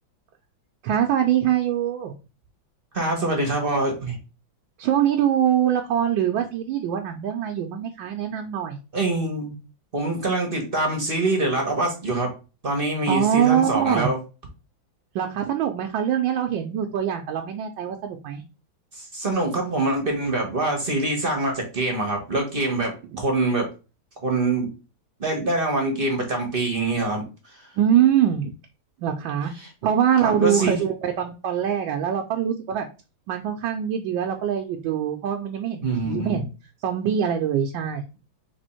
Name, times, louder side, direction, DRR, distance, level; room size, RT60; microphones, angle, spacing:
voice 1, 0.8-2.1 4.8-8.8 13.1-14.1 15.1-18.4 23.1-23.2 27.8-28.5 29.0-29.5 29.8-32.9 33.3-36.4 36.8-38.0, right 9 dB, 80° right, 3 dB, 1.3 m, -23 dB
voice 2, 2.9-4.2 8.9-9.6 9.9-12.3 12.6-14.2 18.9-23.7 24.2-24.7 25.2-27.2 29.6-29.7 30.2-30.8 35.8-36.4, right 2 dB, 35° right, 1 dB, 1.0 m, -24 dB
3.4 x 3.3 x 4.3 m, 0.31 s
omnidirectional pair, 2.1 m